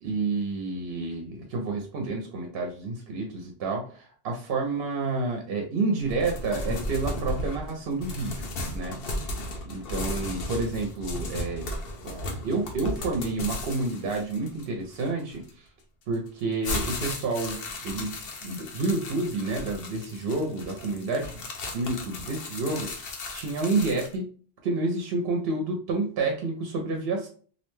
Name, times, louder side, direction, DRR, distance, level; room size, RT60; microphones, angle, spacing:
voice 1, 0.0-3.9 4.2-8.5 8.7-9.3 9.6-11.7 12.0-15.7 16.1-18.2 18.4-21.4 21.7-24.3 24.6-27.3, right 3 dB, 70° right, 2 dB, 0.8 m, -29 dB
sound 1, 6.0-15.5 16.1-24.2, left 1 dB, 70° left, 0.8 m, -35 dB
2.6 x 2.1 x 3.0 m, 0.43 s
omnidirectional pair, 1.0 m